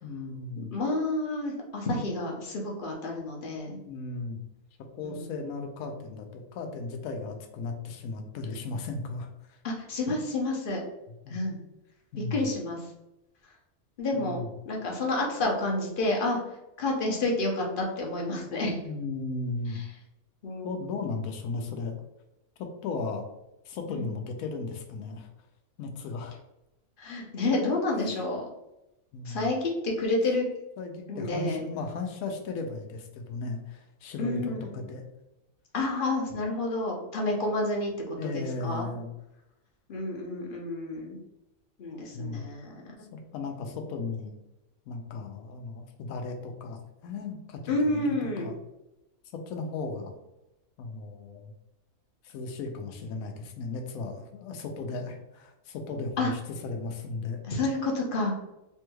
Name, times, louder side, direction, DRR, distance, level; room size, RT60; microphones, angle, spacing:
voice 1, 0.0-0.7 3.9-4.4 4.9-9.6 11.2-11.4 12.1-12.5 14.1-14.5 18.8-19.8 20.6-21.9 22.6-23.3 23.6-25.3 25.8-26.4 29.1-29.6 30.8-35.0 38.2-39.1 42.1-42.5 43.1-44.4 44.9-48.5 49.5-50.1 50.8-51.5 52.2-57.4, left 3 dB, 75° left, 4 dB, 1.0 m, -36 dB
voice 2, 0.6-3.8 5.0-5.4 9.6-10.8 11.3-11.6 12.3-12.9 14.0-14.4 14.7-16.4 16.8-18.8 20.4-20.8 23.9-24.0 27.0-28.5 29.2-30.5 31.1-31.6 34.2-34.7 35.7-37.9 38.2-38.9 39.9-41.2 41.8-42.8 47.7-48.5 56.2-56.3 57.5-58.4, left 2 dB, 50° left, -1 dB, 0.7 m, -29 dB
3.4 x 3.1 x 2.2 m, 0.92 s
omnidirectional pair, 1.6 m